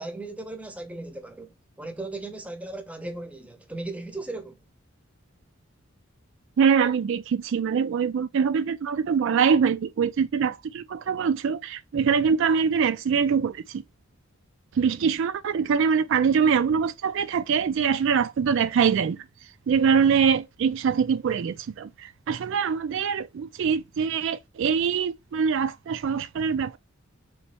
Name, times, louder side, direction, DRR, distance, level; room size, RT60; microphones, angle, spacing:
voice 1, 0.0-4.6, right 2 dB, 5° right, 0.7 m, -37 dB
voice 2, 6.6-13.8 14.8-19.2 19.7-26.8, right 6 dB, 65° right, 0.3 m, -23 dB
3.5 x 3.1 x 4.1 m
head